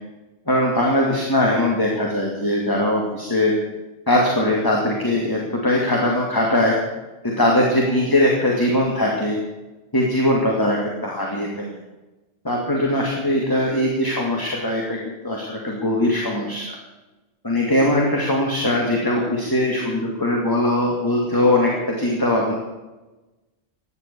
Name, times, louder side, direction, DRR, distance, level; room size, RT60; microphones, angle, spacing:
voice 1, 0.5-3.5 4.1-6.8 7.2-9.4 9.9-11.7 12.4-16.8 17.4-22.5, left 1 dB, 20° left, -2 dB, 2.5 m, -21 dB
16.0 x 10.5 x 6.9 m, 1.1 s
omnidirectional pair, 1.2 m